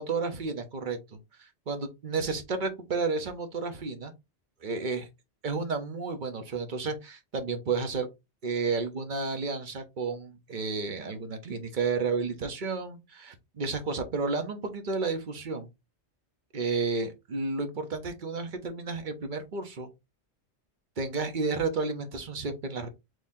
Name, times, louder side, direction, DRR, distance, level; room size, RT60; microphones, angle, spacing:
voice 1, 0.0-4.1 4.6-5.1 5.4-8.1 8.4-15.7 16.5-19.9 21.0-22.9, right 4 dB, 45° right, 0.9 m, -32 dB
3.8 x 3.2 x 2.7 m
omnidirectional pair, 1.2 m